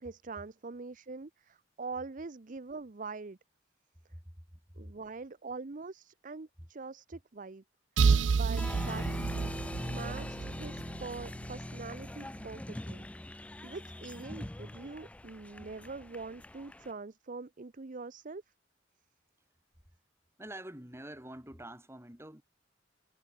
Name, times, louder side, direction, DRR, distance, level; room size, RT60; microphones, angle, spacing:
voice 1, 0.0-3.4 4.8-7.6 8.3-9.6 9.9-13.1 13.6-18.4, right 4 dB, 45° right, 0.7 m, -43 dB
voice 2, 4.1-4.8 6.6-6.7 20.4-22.4, right 1 dB, 15° right, 5.9 m, -47 dB
sound 1, 8.0-11.7, right 5 dB, 90° right, 0.4 m, -30 dB
Applause, 8.5-16.9, left 1 dB, 5° left, 0.3 m, -42 dB
head